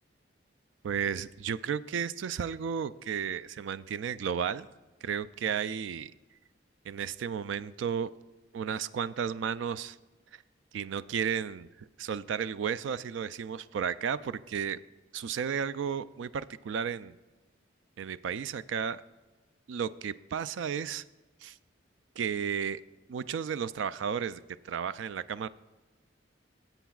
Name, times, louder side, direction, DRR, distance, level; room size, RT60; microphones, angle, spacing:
voice 1, 0.8-4.7 5.0-6.1 6.9-8.1 8.5-10.0 10.7-14.8 15.1-17.2 18.0-19.0 19.7-21.0 21.4-21.6 22.2-22.8 23.1-25.5, right 7 dB, 75° right, 16 dB, 0.3 m, -33 dB
16.0 x 8.0 x 2.4 m, 1.2 s
head